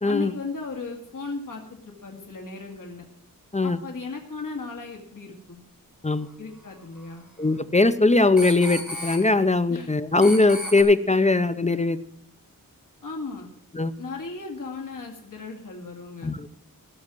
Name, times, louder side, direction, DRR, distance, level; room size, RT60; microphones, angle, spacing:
voice 1, 0.1-3.0 3.6-5.6 6.4-7.3 9.7-9.9 13.0-13.5 14.0-16.3, left 4 dB, 60° left, 1 dB, 2.3 m, -36 dB
sound 1, 7.0-7.1 8.4-9.2 10.2-10.8, equal, 5° right, 4.6 m, -33 dB
voice 2, 7.4-12.0 13.7-13.9 16.2-16.5, left 3 dB, 20° left, 13 dB, 0.6 m, -20 dB
16.5 x 6.5 x 7.4 m, 0.64 s
wide cardioid pair, 100°, 36 cm